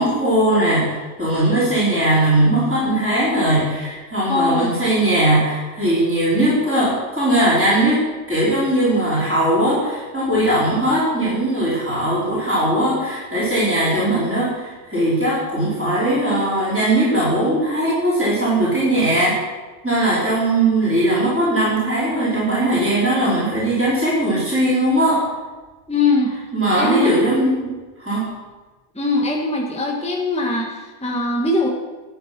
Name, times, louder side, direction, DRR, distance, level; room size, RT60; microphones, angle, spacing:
voice 1, 0.0-19.5 19.8-25.3 26.5-27.7 28.0-28.3, right 1 dB, 10° right, -10 dB, 4.8 m, -19 dB
voice 2, 4.3-4.7 25.9-26.4 26.7-27.1 28.9-31.7, left 2 dB, 5° left, -1 dB, 1.5 m, -21 dB
12.5 x 9.1 x 6.0 m, 1.2 s
omnidirectional pair, 1.2 m